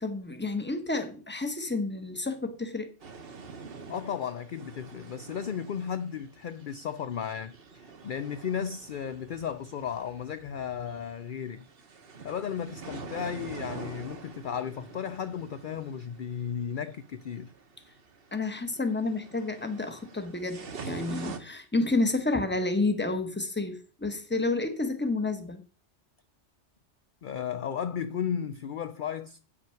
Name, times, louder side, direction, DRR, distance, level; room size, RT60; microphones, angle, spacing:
voice 1, 0.0-2.9 18.3-25.6, left 2 dB, 10° left, 1.0 m, -30 dB
sound 1, 3.0-21.4, right 4 dB, 55° right, 1.3 m, -45 dB
voice 2, 3.9-11.7 12.2-17.5 27.2-29.4, left 8 dB, 55° left, 0.6 m, -34 dB
9.0 x 6.2 x 5.7 m
omnidirectional pair, 1.2 m